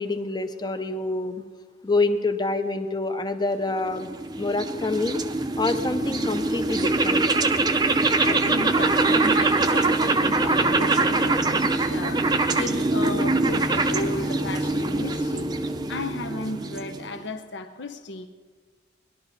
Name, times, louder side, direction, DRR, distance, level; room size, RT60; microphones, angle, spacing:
voice 1, 0.0-1.4 1.8-4.1 4.4-5.2 5.6-7.3, left 2 dB, 20° left, 8 dB, 0.6 m, -26 dB
sound 1, 3.8-17.2, right 3 dB, 20° right, 0.5 m, -23 dB
voice 2, 8.2-12.3 12.5-15.5 15.9-18.3, left 2 dB, 70° left, 7 dB, 0.8 m, -34 dB
20.0 x 12.0 x 4.1 m, 1.4 s
head